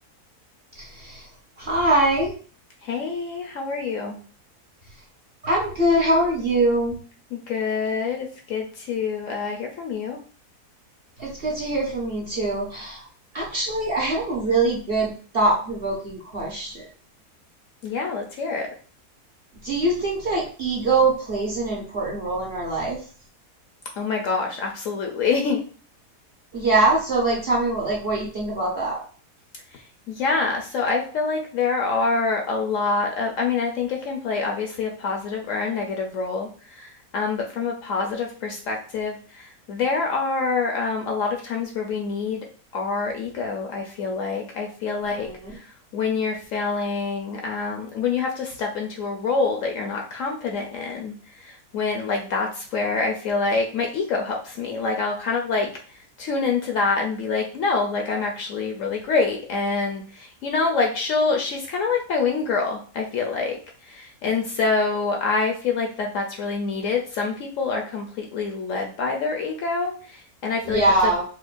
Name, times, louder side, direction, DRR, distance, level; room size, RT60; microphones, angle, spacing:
voice 1, 0.8-1.2 1.6-2.3 5.4-7.0 11.2-13.0 13.3-16.9 19.6-23.0 26.5-29.0 45.0-45.5 70.6-71.2, right 2 dB, 50° right, -2 dB, 0.8 m, -23 dB
voice 2, 2.8-4.2 7.3-10.2 17.8-18.7 24.0-25.6 30.1-36.5 36.8-42.5 42.7-45.3 45.5-45.6 45.9-55.7 56.2-63.6 63.9-71.1, left 4 dB, 70° left, 2 dB, 0.8 m, -26 dB
4.4 x 2.1 x 2.5 m, 0.41 s
omnidirectional pair, 1.6 m